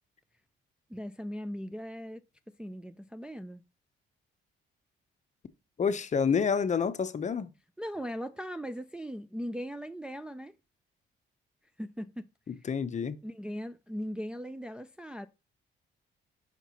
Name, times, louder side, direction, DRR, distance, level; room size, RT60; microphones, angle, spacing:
voice 1, 0.9-2.2 2.6-3.6 7.8-10.6 11.8-12.3 13.2-15.3, equal, 5° right, 0.4 m, -39 dB
voice 2, 5.8-7.5 12.5-13.2, left 6 dB, 35° left, 0.7 m, -28 dB
5.9 x 4.5 x 4.1 m
cardioid pair, 90°, 20 cm